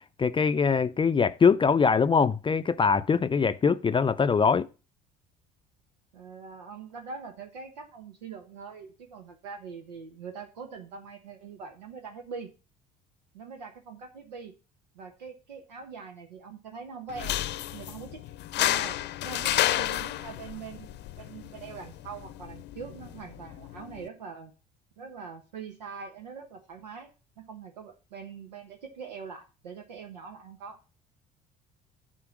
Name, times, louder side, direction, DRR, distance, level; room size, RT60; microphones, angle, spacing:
voice 1, 0.2-4.7, left 5 dB, 25° left, 0.5 m, -23 dB
voice 2, 6.1-12.5 13.3-14.5 14.9-17.4 17.7-18.2 18.6-19.0 19.2-24.5 25.0-27.1 27.4-30.8, right 5 dB, 90° right, 1.1 m, -43 dB
sound 1, 17.1-24.1, left 13 dB, 55° left, 0.7 m, -32 dB
10.0 x 4.4 x 6.2 m
hypercardioid pair, 65°, 21 cm